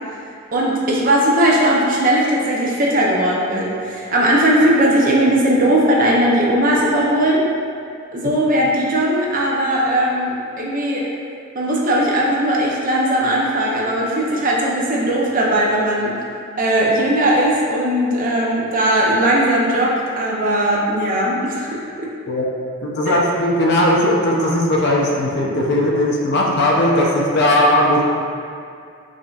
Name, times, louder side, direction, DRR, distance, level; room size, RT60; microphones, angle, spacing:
voice 1, 0.5-7.4 8.1-11.1 11.5-16.1 16.6-22.1 23.1-23.2, right 1 dB, 40° right, -4 dB, 0.5 m, -18 dB
voice 2, 22.8-28.0, left 1 dB, 50° left, -2 dB, 0.5 m, -17 dB
5.0 x 2.6 x 2.3 m, 2.5 s
head